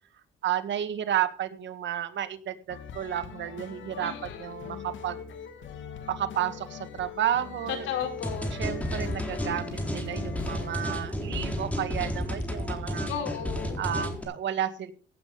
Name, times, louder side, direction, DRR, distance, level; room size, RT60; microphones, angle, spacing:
voice 1, 0.4-5.2 6.1-7.9 8.5-13.1 13.8-14.9, right 10 dB, 70° right, 10 dB, 1.7 m, -32 dB
sound 1, 2.7-11.0, left 7 dB, 70° left, 2.5 m, -42 dB
voice 2, 4.0-4.5 7.7-8.5 13.1-13.8, left 8 dB, 90° left, 5 dB, 4.6 m, -34 dB
sound 2, 8.2-14.2, equal, 5° left, 4.0 m, -32 dB
16.5 x 8.8 x 5.2 m, 0.41 s
cardioid pair, 90°, 20 cm